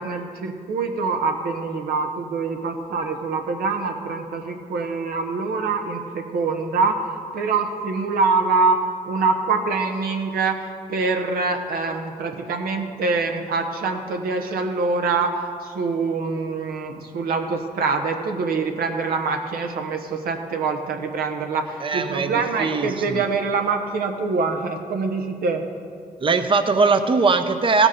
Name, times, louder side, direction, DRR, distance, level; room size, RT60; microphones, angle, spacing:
voice 1, 0.0-7.1 7.3-8.8 9.1-25.6, right 4 dB, 90° right, 4 dB, 1.0 m, -24 dB
voice 2, 21.8-23.2 26.2-27.9, right 4 dB, 35° right, 8 dB, 0.7 m, -20 dB
15.5 x 6.3 x 5.1 m, 2.2 s
cardioid pair, 70°, 15 cm